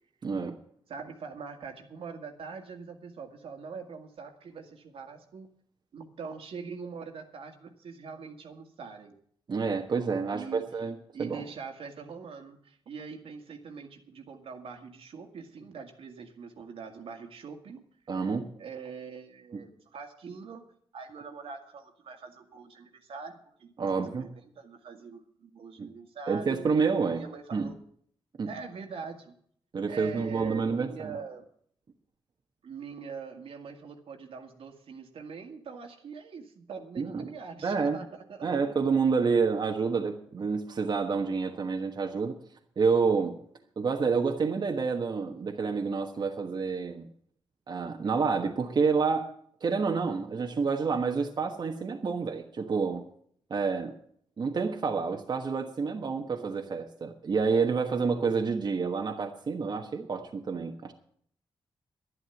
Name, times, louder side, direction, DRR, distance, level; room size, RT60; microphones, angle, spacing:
voice 1, 0.2-0.6 9.5-11.4 18.1-18.5 19.5-19.6 23.8-24.3 25.8-25.9 26.3-27.2 27.5-27.7 28.4-28.5 29.7-31.2 37.0-37.3 37.6-38.0 38.4-42.3 42.8-43.4 43.8-47.1 47.7-49.3 49.6-53.0 53.5-54.0 54.4-60.9, right 5 dB, 50° right, 2 dB, 1.3 m, -28 dB
voice 2, 0.9-5.5 5.9-9.2 10.3-10.6 11.1-17.8 18.6-20.6 20.9-26.6 27.2-27.7 28.5-29.4 29.9-31.5 32.6-38.5 38.8-38.9, right 5 dB, 75° right, 4 dB, 2.1 m, -43 dB
11.0 x 11.0 x 7.2 m, 0.62 s
cardioid pair, 105°, 10 cm